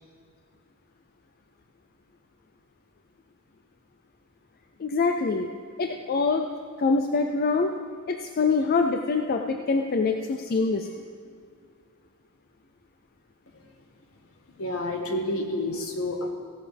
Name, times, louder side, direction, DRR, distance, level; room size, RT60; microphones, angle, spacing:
voice 1, 4.8-5.5 5.8-6.5 6.8-7.7 8.1-10.9, left 4 dB, 45° left, 5 dB, 0.4 m, -24 dB
voice 2, 14.2-16.3, left 1 dB, 70° left, 2 dB, 1.5 m, -30 dB
16.0 x 10.5 x 3.4 m, 2.2 s
head